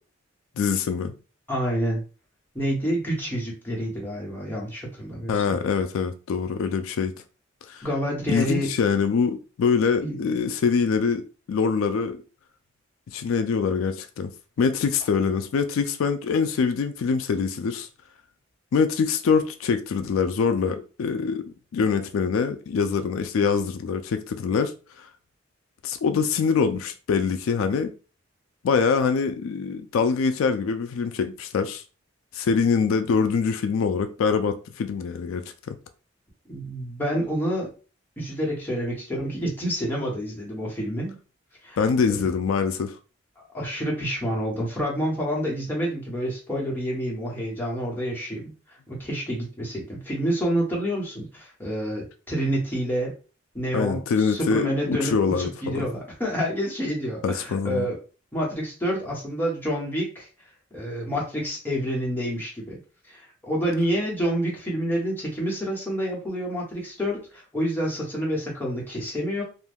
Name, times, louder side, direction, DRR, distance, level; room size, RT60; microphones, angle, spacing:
voice 1, 0.6-1.1 5.3-7.1 7.7-7.9 8.3-11.2 11.5-12.2 13.1-14.3 14.6-17.9 18.7-21.4 21.7-24.7 25.0-25.1 25.8-27.9 28.6-31.8 32.3-35.8 41.8-42.9 53.7-55.9 57.2-57.9, left 5 dB, 85° left, 0.3 m, -24 dB
voice 2, 1.5-2.0 2.5-5.6 7.8-8.7 10.0-10.2 36.5-37.7 38.2-41.2 41.6-41.8 42.1-42.3 43.5-48.4 48.9-53.1 53.5-58.0 58.3-60.3 60.7-62.8 63.1-69.4, equal, 10° left, 1.0 m, -28 dB
2.5 x 2.2 x 3.4 m
head